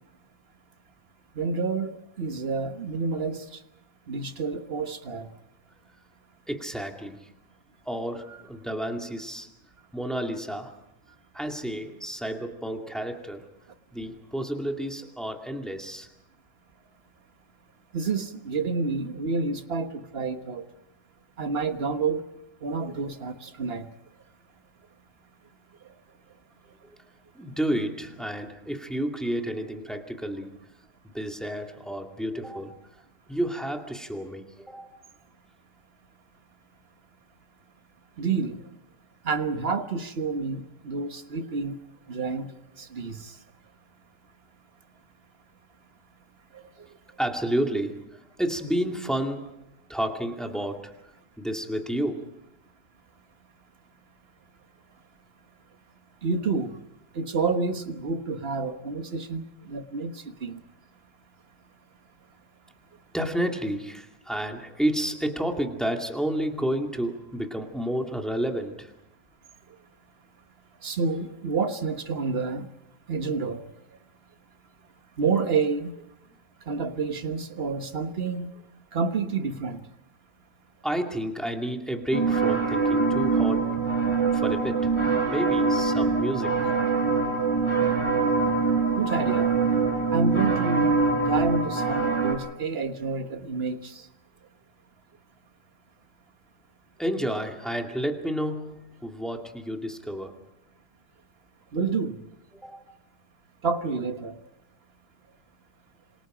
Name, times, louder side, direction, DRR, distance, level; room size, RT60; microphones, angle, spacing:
voice 1, 1.3-3.4 4.1-5.3 17.9-20.6 21.4-22.2 22.6-23.9 38.2-38.7 39.2-41.8 42.1-42.5 42.8-43.3 46.5-46.6 56.2-56.8 57.1-60.6 70.8-72.7 73.1-73.6 75.2-75.9 76.7-78.5 78.9-79.8 88.9-89.5 90.1-94.0 101.7-102.2 103.6-104.4, right 4 dB, 40° right, 8 dB, 1.5 m, -29 dB
voice 2, 6.5-7.4 7.8-9.5 9.9-10.8 11.3-13.5 13.9-16.1 27.3-30.7 31.1-32.8 33.3-35.0 47.2-49.5 49.9-50.9 51.4-52.3 63.1-68.9 80.8-83.8 84.3-84.9 85.2-86.7 97.0-100.4 102.5-102.9, right 1 dB, ahead, 2 dB, 2.2 m, -30 dB
sound 1, 82.1-92.3, right 4 dB, 15° left, 8.1 m, -24 dB
27.0 x 26.5 x 5.1 m, 0.85 s
omnidirectional pair, 1.7 m